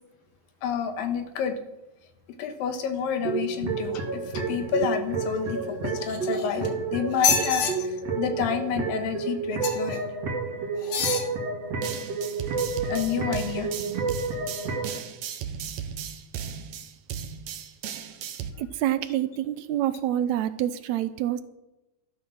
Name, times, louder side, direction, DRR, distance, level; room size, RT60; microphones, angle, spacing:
voice 1, 0.6-1.6 2.4-10.0 12.9-13.7 18.6-18.7, left 7 dB, 85° left, 6 dB, 3.0 m, -29 dB
sound 1, 3.2-15.0, right 4 dB, 50° right, 3.0 m, -30 dB
sound 2, 6.0-6.7 7.1-7.7 9.6-10.0 10.8-11.3 11.9-12.0, left 6 dB, 60° left, 2.6 m, -26 dB
sound 3, 11.8-18.5, right 8 dB, 65° right, 1.9 m, -36 dB
voice 2, 18.6-21.4, right 12 dB, 80° right, 12 dB, 1.6 m, -27 dB
12.5 x 12.0 x 6.2 m, 0.97 s
omnidirectional pair, 4.0 m